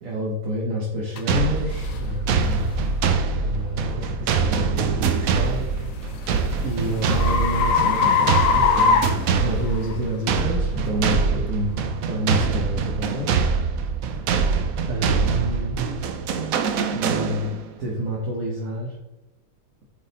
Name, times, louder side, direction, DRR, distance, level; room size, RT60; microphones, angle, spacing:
voice 1, 0.0-2.7 3.4-5.7 6.6-11.8 12.1-13.4 14.2-15.8 16.9-17.5 17.8-18.9, equal, 50° right, -4 dB, 1.3 m, -28 dB
sound 1, 1.2-1.3 1.8-2.0 2.6-2.8 5.5-10.0, left 6 dB, 65° left, 0.8 m, -22 dB
sound 2, 1.3-17.7, right 5 dB, 90° right, 0.7 m, -24 dB
sound 3, 1.7-15.5 15.8-16.7, left 1 dB, 65° right, 0.9 m, -37 dB
8.4 x 3.9 x 4.0 m, 1.0 s
omnidirectional pair, 2.2 m